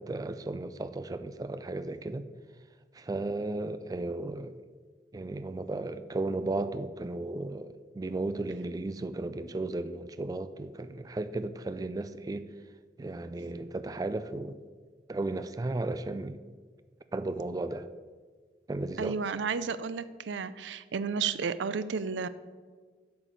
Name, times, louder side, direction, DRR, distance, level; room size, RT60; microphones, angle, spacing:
voice 1, 0.0-2.3 2.9-4.6 5.1-12.5 13.0-14.6 15.1-16.4 17.1-17.9 18.7-19.2, right 2 dB, 20° right, 11 dB, 0.3 m, -34 dB
voice 2, 19.0-22.3, right 5 dB, 85° right, 15 dB, 0.4 m, -32 dB
8.1 x 5.0 x 7.5 m, 1.5 s
head